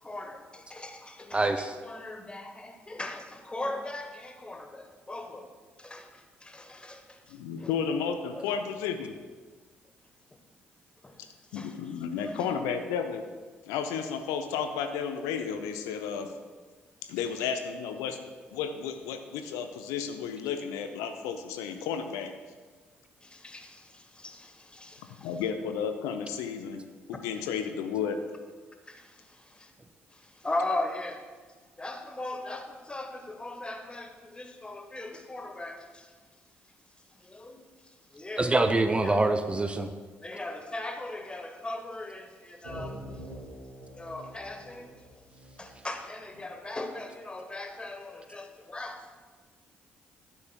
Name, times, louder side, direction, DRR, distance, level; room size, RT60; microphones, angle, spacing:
voice 1, 0.0-5.5 5.8-7.2 7.6-7.7 8.4-8.5 11.0-11.2 11.5-11.8 12.2-12.4 23.2-25.3 28.9-29.7 30.1-31.2 31.8-36.1 37.2-37.6 38.1-38.6 39.0-39.1 40.2-43.0 43.9-44.9 45.6-49.2, left 2 dB, 15° left, 5 dB, 1.1 m, -39 dB
voice 2, 1.3-1.8 38.4-39.9, right 2 dB, 20° right, 8 dB, 0.5 m, -25 dB
voice 3, 7.3-9.1 11.5-13.2 13.7-16.3 17.1-18.2 18.5-22.3 25.2-26.8 27.1-28.2, left 7 dB, 65° left, 7 dB, 0.5 m, -32 dB
sound 1, 42.6-46.2, right 1 dB, 65° right, 2.3 m, -45 dB
12.0 x 9.5 x 2.2 m, 1.4 s
figure-of-eight pair, 45°, 6 cm